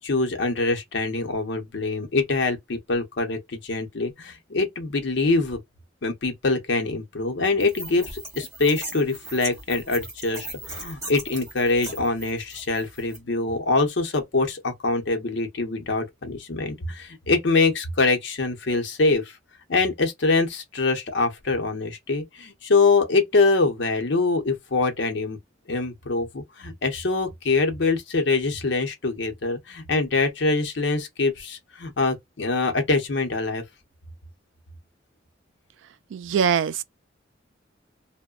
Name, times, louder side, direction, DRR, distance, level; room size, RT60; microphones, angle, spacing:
voice 1, 0.0-5.6 6.0-19.3 19.7-25.4 25.7-33.6, left 3 dB, 70° left, 0.7 m, -24 dB
sound 1, 7.6-13.2, right 2 dB, 15° right, 1.3 m, -38 dB
voice 2, 36.1-36.8, right 7 dB, 85° right, 0.3 m, -22 dB
2.8 x 2.1 x 2.3 m
head